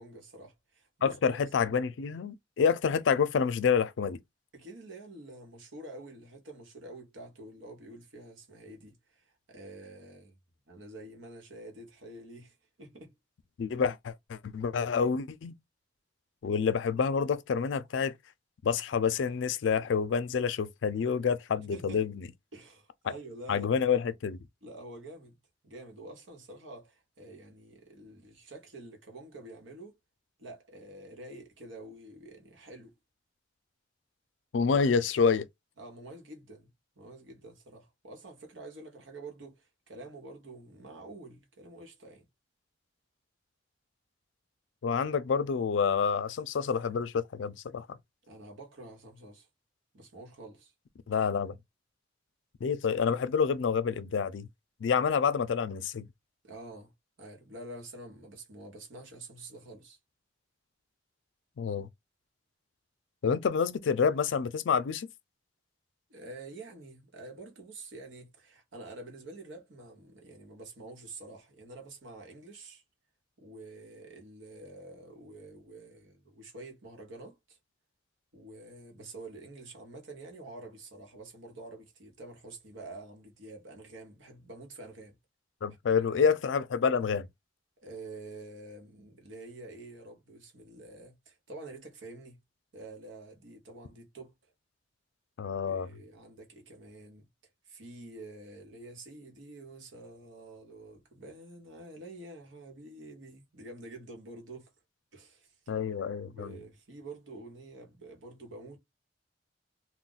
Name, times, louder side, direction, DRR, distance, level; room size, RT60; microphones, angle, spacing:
voice 1, 0.0-1.4 4.5-10.4 10.7-13.1 21.6-22.0 22.5-23.9 24.6-25.4 25.6-30.0 30.4-32.9 35.8-36.7 37.0-42.3 48.3-49.5 49.9-50.7 56.4-56.9 57.2-60.0 66.1-72.8 73.4-77.6 78.3-85.2 85.8-86.2 87.8-92.4 92.7-94.3 95.7-97.3 97.7-104.7 105.1-105.5 106.2-108.8, right 2 dB, 90° right, 1.0 m, -48 dB
voice 2, 1.0-4.2 13.6-15.5 16.4-18.1 18.6-22.3 23.5-24.4 34.5-35.5 44.8-48.0 51.1-51.6 52.6-54.5 54.8-56.1 61.6-61.9 63.2-65.1 85.6-87.3 95.4-95.9 105.7-106.6, left 6 dB, 75° left, 0.4 m, -28 dB
2.4 x 2.1 x 3.8 m
head